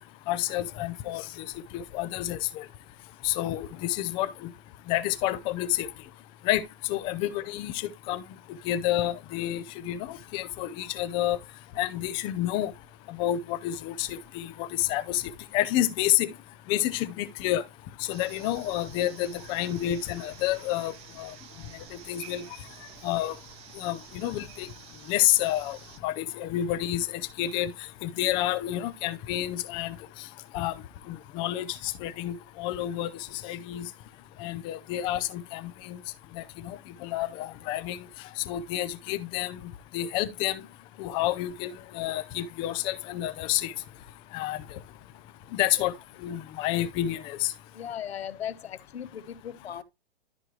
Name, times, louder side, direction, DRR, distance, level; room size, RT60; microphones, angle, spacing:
voice 1, 0.3-1.2 1.7-2.6 3.2-4.5 4.9-5.9 6.5-6.6 6.9-8.2 8.7-11.4 11.8-12.7 13.1-15.2 15.5-16.3 16.7-17.6 18.1-21.3 22.1-22.4 23.0-23.4 23.8-24.7 25.1-25.8 26.0-27.1 27.4-27.7 28.0-29.9 30.5-30.7 31.1-33.1 33.4-33.9 34.4-36.0 36.4-38.0 38.5-39.6 39.9-40.6 41.0-43.7 44.3-44.6 45.5-45.9 46.2-47.5, left 13 dB, 15° left, 0.4 m, -29 dB
sound 1, 18.1-26.0, right 10 dB, 20° right, 0.8 m, -49 dB
voice 2, 47.7-49.8, left 9 dB, 85° left, 1.0 m, -37 dB
13.0 x 4.7 x 3.1 m
hypercardioid pair, 145°, 31 cm